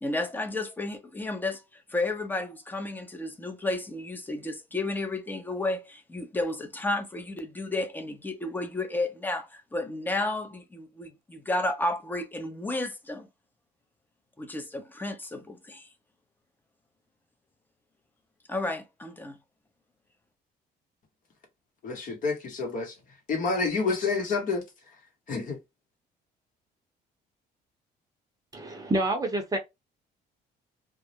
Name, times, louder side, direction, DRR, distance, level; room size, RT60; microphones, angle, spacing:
voice 1, 0.0-13.3 14.4-15.9 18.5-19.4, left 2 dB, 10° left, 0.6 m, -32 dB
voice 2, 21.8-22.9 23.3-24.6 25.3-25.6, left 4 dB, 55° left, 1.0 m, -28 dB
voice 3, 28.5-29.6, right 1 dB, 20° right, 0.7 m, -27 dB
2.3 x 2.0 x 2.8 m
cardioid pair, 110°, 17 cm